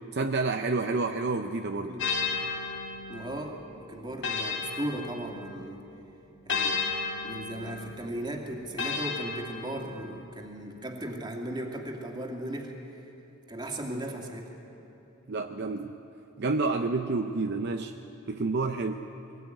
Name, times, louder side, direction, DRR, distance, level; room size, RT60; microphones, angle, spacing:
voice 1, 0.1-2.0 15.3-16.0 16.4-17.9 18.3-19.1, right 3 dB, 50° right, 5 dB, 0.7 m, -29 dB
sound 1, 2.0-5.7 6.5-10.2, left 5 dB, 60° left, 1.9 m, -34 dB
voice 2, 3.1-5.8 6.5-6.9 7.2-12.7 13.5-14.5, right 1 dB, 20° right, 1 dB, 2.3 m, -37 dB
21.5 x 18.5 x 9.1 m, 3.0 s
head